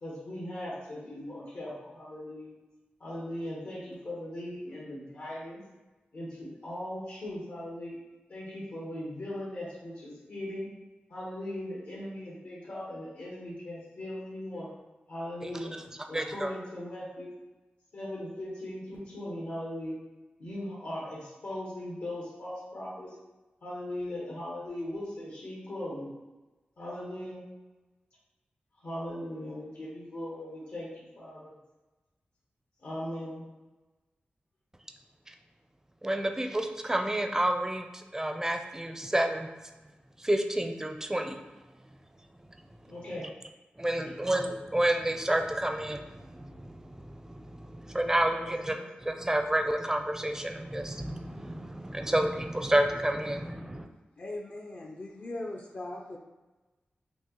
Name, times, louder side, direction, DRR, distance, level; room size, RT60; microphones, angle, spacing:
voice 1, 0.0-2.5 3.0-5.6 6.1-7.9 8.3-10.7 11.1-14.7 15.1-15.7 16.1-17.3 17.9-20.0 20.4-23.2 23.6-26.1 26.8-27.4 28.8-31.5 32.8-33.4 42.9-43.3 43.8-44.2 48.3-49.1, left 1 dB, 80° left, -8 dB, 1.2 m, -39 dB
voice 2, 16.1-16.5 36.0-39.5 40.2-41.4 43.8-53.8, right 1 dB, 15° right, 5 dB, 0.4 m, -30 dB
voice 3, 54.2-56.2, left 2 dB, 50° left, -1 dB, 0.5 m, -39 dB
6.0 x 2.0 x 2.9 m, 1.1 s
cardioid pair, 65°, 4 cm